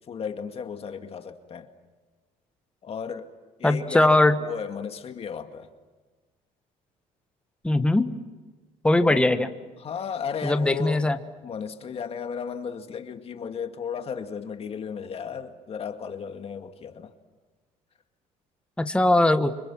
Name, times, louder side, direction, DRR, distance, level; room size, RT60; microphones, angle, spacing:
voice 1, 0.1-1.7 2.8-3.3 3.6-5.7 9.0-9.3 9.8-11.2 11.4-17.1, left 7 dB, 40° left, 2.1 m, -34 dB
voice 2, 3.6-4.3 7.6-8.1 8.8-9.5 10.4-11.2 18.8-19.5, left 2 dB, 5° left, 1.4 m, -20 dB
30.0 x 26.0 x 7.6 m
cardioid pair, 105°, 15 cm